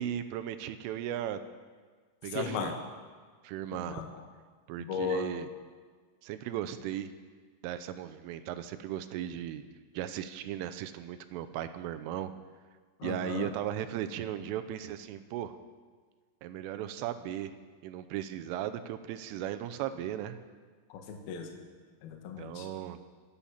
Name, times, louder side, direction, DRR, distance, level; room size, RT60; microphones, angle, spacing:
voice 1, 0.0-1.4 2.2-2.7 3.4-4.0 4.7-5.5 6.2-7.1 7.6-9.6 9.9-12.3 13.0-15.5 16.4-17.6 17.8-20.4 22.4-23.0, right 11 dB, 85° right, 10 dB, 3.2 m, -36 dB
voice 2, 2.3-2.7 3.7-4.1 4.8-5.3 13.0-13.5 20.9-21.6 22.0-22.7, left 6 dB, 60° left, 3 dB, 2.9 m, -36 dB
25.5 x 8.7 x 5.7 m, 1.5 s
omnidirectional pair, 5.8 m